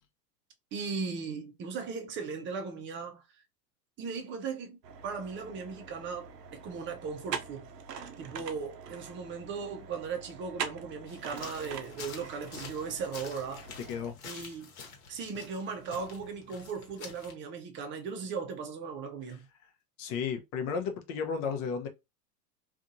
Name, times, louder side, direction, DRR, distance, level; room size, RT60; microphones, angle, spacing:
voice 1, 0.7-3.2 4.0-7.7 8.2-13.6 14.2-14.7 15.1-19.5, right 5 dB, 25° right, 0.6 m, -37 dB
sound 1, 4.8-14.1, right 7 dB, 90° right, 0.6 m, -43 dB
sound 2, 11.1-17.3, left 5 dB, 65° left, 1.1 m, -48 dB
voice 2, 13.8-14.2 20.0-21.9, left 6 dB, 45° left, 0.7 m, -33 dB
2.6 x 2.4 x 2.6 m
hypercardioid pair, 100°, 47 cm